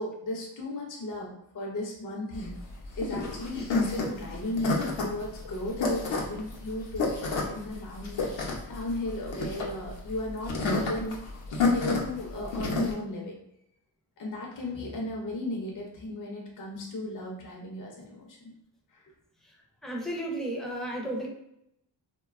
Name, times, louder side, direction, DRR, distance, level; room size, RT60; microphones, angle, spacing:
voice 1, 0.0-2.5 3.0-11.2 11.7-13.4 14.2-18.5 18.9-19.1, left 1 dB, 45° left, -1 dB, 0.6 m, -35 dB
sound 1, 2.3-12.9, left 3 dB, 80° left, 0.7 m, -30 dB
voice 2, 19.4-21.3, right 1 dB, ahead, -1 dB, 0.5 m, -34 dB
2.6 x 2.2 x 2.3 m, 0.81 s
wide cardioid pair, 90°, 44 cm